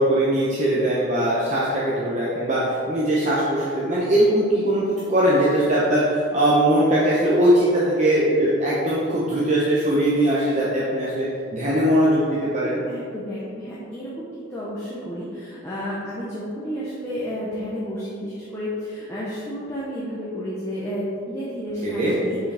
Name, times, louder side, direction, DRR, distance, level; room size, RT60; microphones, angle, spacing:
voice 1, 0.0-12.8 21.8-22.1, right 1 dB, 35° right, -7 dB, 0.8 m, -20 dB
voice 2, 12.9-22.5, equal, 15° left, -9 dB, 0.8 m, -31 dB
6.2 x 4.8 x 3.4 m, 2.5 s
head